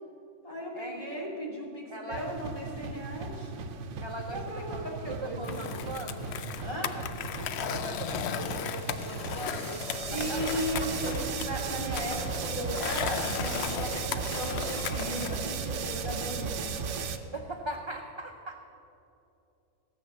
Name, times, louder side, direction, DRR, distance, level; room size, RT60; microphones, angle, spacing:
voice 1, 0.4-3.5 4.3-5.6 6.6-6.9 10.1-16.6, equal, 25° left, -3 dB, 2.5 m, -36 dB
voice 2, 1.9-2.2 4.0-6.3 6.9-7.0 7.4-9.8 10.1-10.6 17.3-18.6, right 2 dB, 30° right, 3 dB, 0.5 m, -40 dB
sound 1, 2.1-17.2, right 5 dB, 75° right, 1.1 m, -36 dB
Skateboard, 5.4-15.4, left 8 dB, 65° left, 0.8 m, -36 dB
16.0 x 7.3 x 6.8 m, 2.8 s
omnidirectional pair, 1.3 m